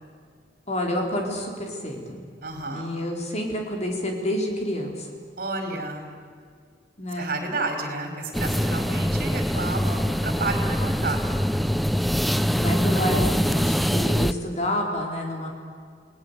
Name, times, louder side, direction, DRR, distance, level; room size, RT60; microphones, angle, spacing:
voice 1, 0.7-2.2 2.7-5.1 7.0-7.3 12.6-15.5, equal, 40° left, 1 dB, 4.4 m, -28 dB
voice 2, 2.4-2.9 5.4-6.1 7.2-11.2, right 2 dB, 55° right, 4 dB, 4.8 m, -31 dB
sound 1, 8.3-14.3, equal, ahead, 0.5 m, -23 dB
29.0 x 19.0 x 8.4 m, 2.1 s
head